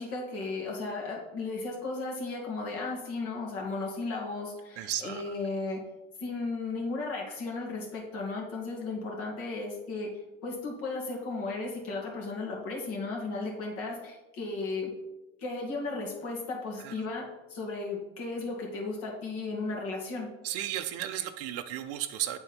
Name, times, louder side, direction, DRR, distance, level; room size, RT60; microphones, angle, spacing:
voice 1, 0.0-5.8 6.2-10.1 10.4-14.9 15.4-20.3, left 3 dB, 50° left, -1 dB, 2.0 m, -35 dB
voice 2, 4.8-5.3 16.8-16.9 20.4-22.4, right 12 dB, 50° right, 9 dB, 0.5 m, -34 dB
9.7 x 3.8 x 4.3 m, 1.0 s
cardioid pair, 165°, 31 cm